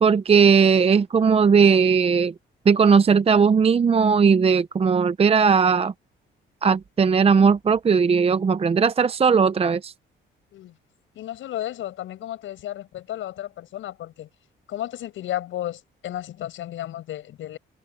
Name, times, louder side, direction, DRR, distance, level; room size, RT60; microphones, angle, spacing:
voice 1, 0.0-2.3 2.7-5.9 6.6-9.9, right 6 dB, 30° right, 0.6 m, -18 dB
voice 2, 11.1-14.3 14.7-17.6, left 13 dB, 80° left, 6.7 m, -33 dB
cardioid pair, 90°, 20 cm